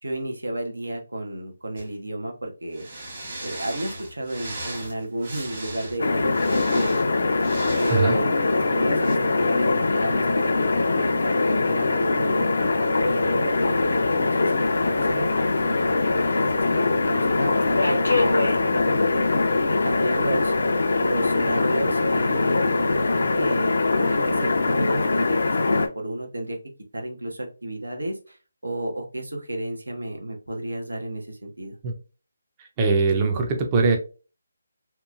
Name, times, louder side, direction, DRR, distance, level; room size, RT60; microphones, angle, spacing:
voice 1, 0.0-2.9 3.4-7.0 7.8-12.5 13.0-20.5 21.0-26.6 26.9-28.4 28.6-31.8, right 1 dB, 90° right, 3 dB, 0.8 m, -32 dB
sound 1, 1.8-1.9 2.7-8.1 9.0-9.1, right 1 dB, 45° right, 1.3 m, -37 dB
sound 2, 6.0-25.9, left 3 dB, 65° left, 0.4 m, -22 dB
Subway metro underground, 13.5-23.4, left 2 dB, 90° left, 0.8 m, -33 dB
voice 2, 32.8-34.0, right 4 dB, 25° right, 3 dB, 0.4 m, -21 dB
2.9 x 2.3 x 2.4 m, 0.33 s
figure-of-eight pair, 155°, 0 cm